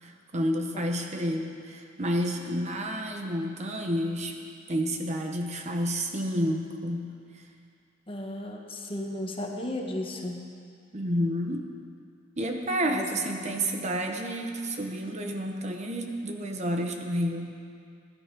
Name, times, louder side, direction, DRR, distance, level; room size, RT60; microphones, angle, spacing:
voice 1, 0.0-4.4 4.7-7.1 10.9-11.7 12.4-17.6, equal, 35° right, 3 dB, 1.0 m, -30 dB
voice 2, 8.1-10.4 12.9-13.1, left 1 dB, 25° left, 1 dB, 1.3 m, -34 dB
17.0 x 12.0 x 5.3 m, 2.4 s
head